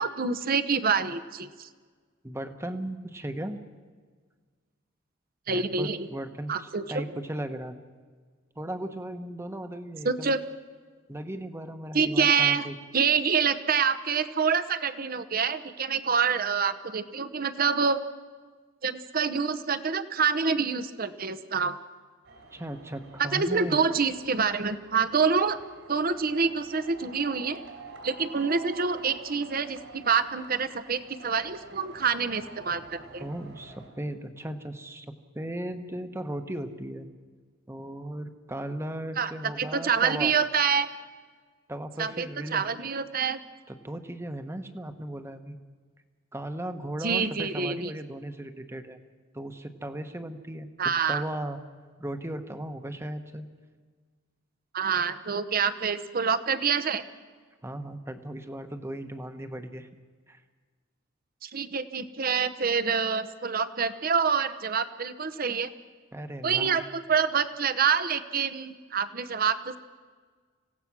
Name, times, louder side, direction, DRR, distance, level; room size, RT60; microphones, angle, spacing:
voice 1, 0.0-1.7 5.5-6.1 6.5-7.0 10.0-10.4 11.9-12.7 12.9-18.0 18.8-21.8 23.2-25.6 25.9-27.6 28.0-33.3 39.2-39.3 39.6-40.9 42.0-43.4 47.0-47.9 50.8-51.2 54.7-57.0 61.4-65.7 66.4-69.8, right 6 dB, 45° right, 13 dB, 0.9 m, -26 dB
voice 2, 2.2-3.6 5.5-7.8 8.6-10.3 11.1-12.8 22.5-23.8 33.2-37.1 37.7-40.3 41.7-42.7 43.7-45.6 46.3-49.0 49.3-51.6 52.0-53.5 57.6-59.9 60.3-60.4 66.1-66.8, right 1 dB, 15° right, 8 dB, 1.1 m, -36 dB
sound 1, 22.2-33.9, right 2 dB, 70° right, 4.5 m, -48 dB
26.0 x 17.0 x 6.1 m, 1.5 s
head